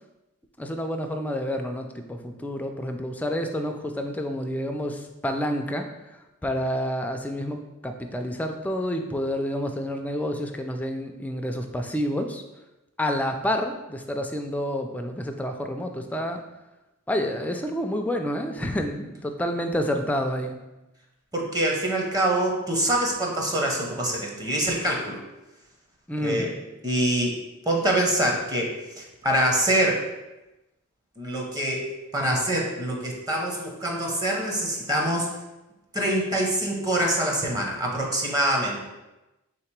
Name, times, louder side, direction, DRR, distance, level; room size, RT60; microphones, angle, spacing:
voice 1, 0.6-12.4 13.0-16.4 17.1-20.6 26.1-26.5, equal, 5° left, 4 dB, 0.3 m, -29 dB
voice 2, 21.3-25.2 26.2-26.5 26.8-27.4 27.7-28.7 29.0-30.0 31.2-31.9 32.1-35.3 35.9-38.8, right 1 dB, 15° right, -1 dB, 0.7 m, -25 dB
3.5 x 2.8 x 4.5 m, 1.0 s
head